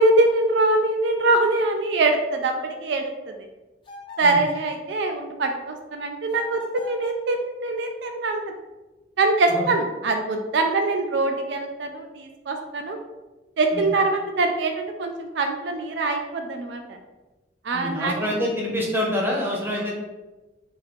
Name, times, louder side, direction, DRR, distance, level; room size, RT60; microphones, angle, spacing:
voice 1, 0.0-3.1 4.2-8.5 9.2-13.0 13.6-17.0 17.6-18.4, right 2 dB, 65° right, 4 dB, 0.4 m, -23 dB
sound 1, 3.8-4.7 6.3-7.3, left 4 dB, 30° left, 0.7 m, -41 dB
voice 2, 17.7-19.9, left 1 dB, 10° right, -3 dB, 0.8 m, -26 dB
3.2 x 2.6 x 4.1 m, 1.1 s
head